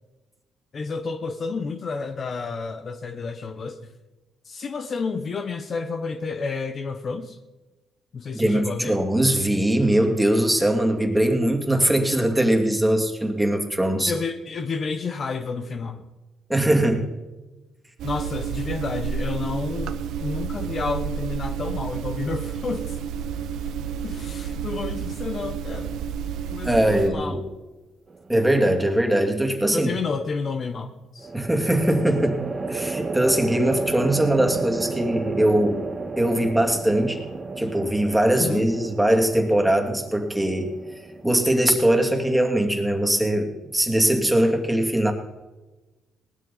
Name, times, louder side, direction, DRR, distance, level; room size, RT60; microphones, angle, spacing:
voice 1, 0.7-3.9 4.4-7.4 8.1-9.0 14.1-16.1 18.0-23.0 24.0-26.0 26.5-27.5 29.7-31.3 38.3-38.7, left 4 dB, 50° left, 8 dB, 1.0 m, -30 dB
voice 2, 8.3-14.1 16.5-17.1 26.6-27.4 28.3-29.9 31.3-32.4 32.7-35.8 36.2-37.2 37.6-40.7 41.2-45.1, right 1 dB, 5° right, 3 dB, 2.6 m, -21 dB
sound 1, 18.0-27.1, right 7 dB, 75° right, 0.8 m, -30 dB
sound 2, 28.1-28.7 31.2-42.6, right 3 dB, 30° right, 1.2 m, -33 dB
19.0 x 12.5 x 4.2 m, 1.1 s
supercardioid pair, 70°, 0 cm